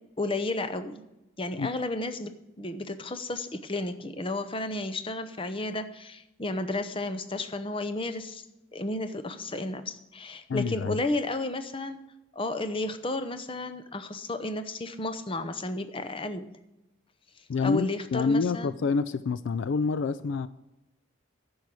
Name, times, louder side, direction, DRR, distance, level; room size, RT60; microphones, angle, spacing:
voice 1, 0.2-1.0 1.4-2.3 2.6-8.4 8.7-12.0 12.3-16.5 17.4-18.7, left 2 dB, 25° left, 0.7 m, -32 dB
voice 2, 10.5-11.0 17.5-20.5, left 4 dB, 65° left, 0.4 m, -27 dB
10.5 x 6.4 x 8.4 m
head